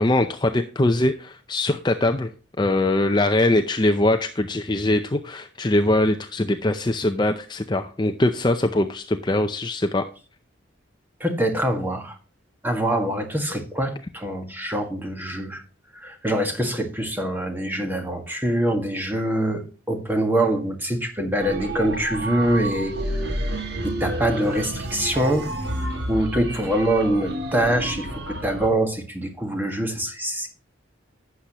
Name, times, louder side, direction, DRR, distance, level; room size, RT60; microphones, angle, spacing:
voice 1, 0.0-2.3 2.6-10.1, left 1 dB, 20° left, 7 dB, 0.5 m, -22 dB
voice 2, 11.2-12.2 12.6-15.6 15.9-23.3 23.8-25.5 26.1-30.5, right 1 dB, 10° right, 4 dB, 1.6 m, -24 dB
sound 1, 21.4-28.7, right 1 dB, 55° right, 2.0 m, -30 dB
11.5 x 8.3 x 3.0 m, 0.35 s
head